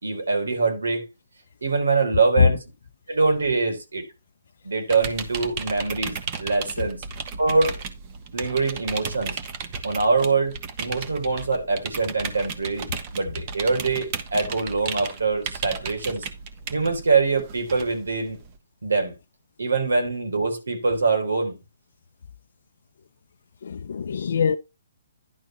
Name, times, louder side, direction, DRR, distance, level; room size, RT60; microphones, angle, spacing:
voice 1, 0.0-1.0 1.6-2.6 3.1-4.0 4.6-7.0 7.4-7.7 8.3-9.4 9.8-16.3 16.7-18.4 18.8-19.2 19.6-21.6, right 4 dB, 90° right, 3.6 m, -24 dB
sound 1, 4.9-18.6, right 6 dB, 35° right, 1.3 m, -35 dB
voice 2, 23.6-24.6, left 6 dB, 70° left, 0.5 m, -21 dB
11.0 x 4.1 x 5.7 m
hypercardioid pair, 150°, 0 cm